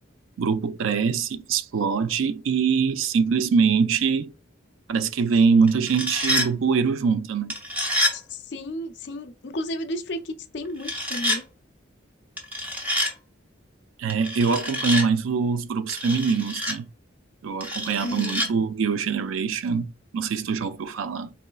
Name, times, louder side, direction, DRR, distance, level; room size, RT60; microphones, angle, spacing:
voice 1, 0.4-4.3 4.9-7.6 14.0-16.9 17.4-21.3, right 5 dB, 85° right, 0.4 m, -23 dB
sound 1, 5.7-6.5 7.5-8.2 10.8-11.4 12.4-13.1 14.1-15.1 15.9-16.8 17.6-18.5, left 1 dB, 10° right, 0.6 m, -27 dB
voice 2, 7.9-11.4 18.0-18.4, left 1 dB, 60° left, 0.5 m, -33 dB
4.2 x 3.0 x 2.3 m
head